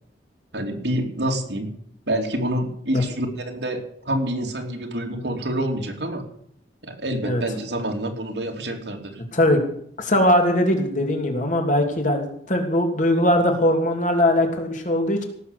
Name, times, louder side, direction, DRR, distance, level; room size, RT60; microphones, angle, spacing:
voice 1, 0.5-1.7 2.1-6.2 6.8-9.2, right 1 dB, 75° right, 3 dB, 2.9 m, -27 dB
voice 2, 10.0-15.2, left 1 dB, 45° left, 3 dB, 2.9 m, -20 dB
17.5 x 7.4 x 8.3 m, 0.66 s
head